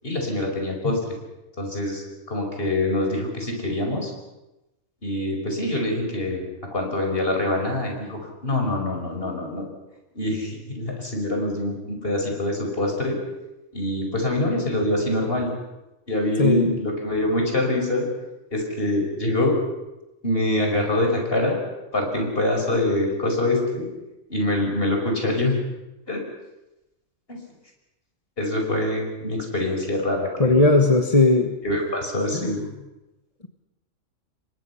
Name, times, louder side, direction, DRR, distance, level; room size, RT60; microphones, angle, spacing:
voice 1, 0.0-1.2 1.6-4.1 5.0-6.4 6.7-9.7 10.1-13.2 13.7-15.5 16.1-18.1 18.5-19.6 20.2-21.6 21.9-23.9 24.3-25.6 26.1-26.2 27.3-27.4 28.4-30.6 31.6-32.6, left 1 dB, 45° left, 2 dB, 5.6 m, -25 dB
voice 2, 16.4-16.8 30.4-31.5 32.3-32.5, left 2 dB, 30° left, 5 dB, 1.4 m, -18 dB
28.5 x 23.5 x 5.8 m, 0.98 s
omnidirectional pair, 1.3 m